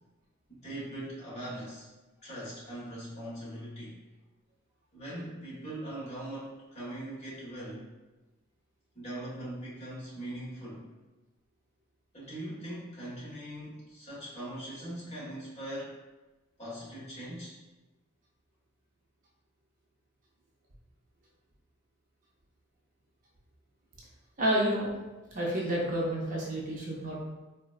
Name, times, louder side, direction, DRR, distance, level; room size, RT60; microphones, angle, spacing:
voice 1, 0.6-1.9 2.2-4.0 4.9-7.9 8.9-10.8 12.1-15.9 16.6-17.5, right 1 dB, 35° left, -9 dB, 1.3 m, -41 dB
voice 2, 24.4-24.9 25.3-27.2, right 1 dB, 40° right, -3 dB, 0.5 m, -29 dB
3.8 x 2.2 x 2.3 m, 1.1 s
head